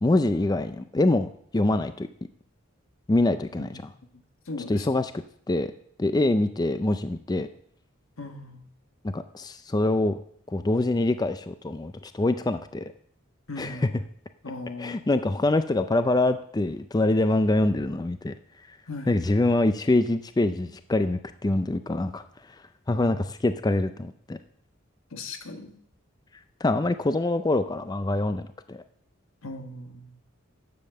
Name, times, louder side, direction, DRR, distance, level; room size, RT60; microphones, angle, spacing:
voice 1, 0.0-1.3 1.5-2.1 3.1-3.7 4.7-5.1 5.5-5.7 6.0-7.5 9.1-10.2 10.5-12.9 13.6-13.9 14.8-18.4 18.7-18.8 19.1-22.2 22.9-24.4 26.6-28.8, left 2 dB, 20° left, 10 dB, 0.4 m, -24 dB
voice 2, 4.1-4.9 8.2-8.6 13.5-13.9 14.4-15.0 18.9-19.1 22.9-23.2 25.1-25.8 29.4-30.2, left 2 dB, 85° left, 6 dB, 1.5 m, -38 dB
10.5 x 7.4 x 6.7 m, 0.64 s
head